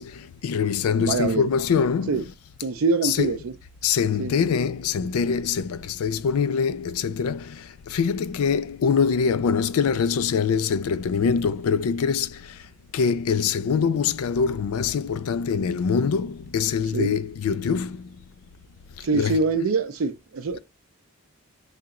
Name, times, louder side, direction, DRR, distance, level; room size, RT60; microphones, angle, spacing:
voice 1, 0.0-2.2 3.0-3.3 3.8-12.6 12.9-18.1 19.0-19.4 20.5-20.6, left 6 dB, 80° left, 0.4 m, -24 dB
voice 2, 1.0-1.5 2.1-2.2 2.6-3.5 4.2-4.4 16.9-17.2 19.0-20.6, right 4 dB, 65° right, 0.5 m, -24 dB
3.3 x 2.9 x 3.6 m
head